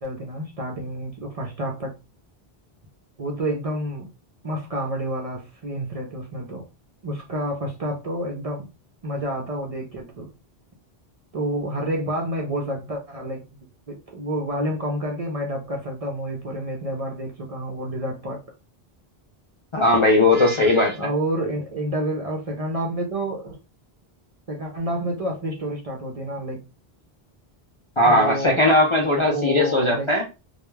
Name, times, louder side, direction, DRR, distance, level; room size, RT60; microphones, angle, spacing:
voice 1, 0.0-2.0 3.2-4.1 4.4-6.7 7.0-8.7 9.0-10.3 11.3-13.4 13.9-18.4 20.9-23.6 24.5-26.6 28.0-28.7 29.3-30.3, right 1 dB, 45° right, 0.5 m, -29 dB
voice 2, 19.7-21.1 28.0-30.2, left 2 dB, 45° left, 0.4 m, -18 dB
2.3 x 2.2 x 3.0 m
omnidirectional pair, 1.0 m